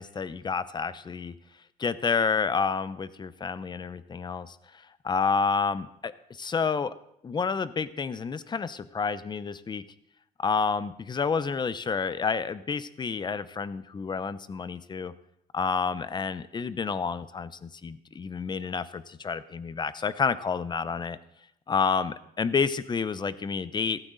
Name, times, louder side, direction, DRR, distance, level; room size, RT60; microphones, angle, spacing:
voice 1, 0.0-1.3 1.8-4.6 5.0-6.9 7.2-9.8 10.4-15.1 15.5-21.2 21.7-24.0, left 5 dB, 25° left, 15 dB, 0.7 m, -29 dB
15.0 x 14.0 x 4.0 m, 0.76 s
cardioid pair, 110°, 17 cm